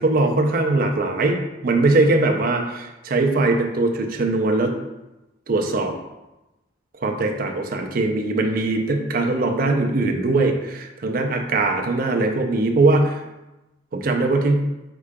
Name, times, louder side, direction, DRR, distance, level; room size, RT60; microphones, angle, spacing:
voice 1, 0.0-4.7 5.5-5.9 7.0-13.2 13.9-14.7, right 2 dB, 50° right, 2 dB, 0.4 m, -21 dB
4.8 x 3.6 x 2.2 m, 1.0 s
head